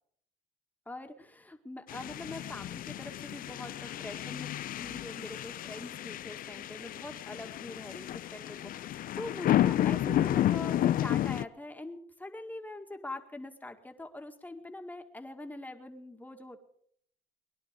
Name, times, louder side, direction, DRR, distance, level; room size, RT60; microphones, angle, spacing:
voice 1, 0.9-4.5 4.8-16.6, left 2 dB, 10° left, 5 dB, 2.0 m, -43 dB
sound 1, 1.9-11.5, left 12 dB, 55° left, 0.6 m, -31 dB
21.0 x 11.0 x 5.2 m, 0.67 s
cardioid pair, 110°, 17 cm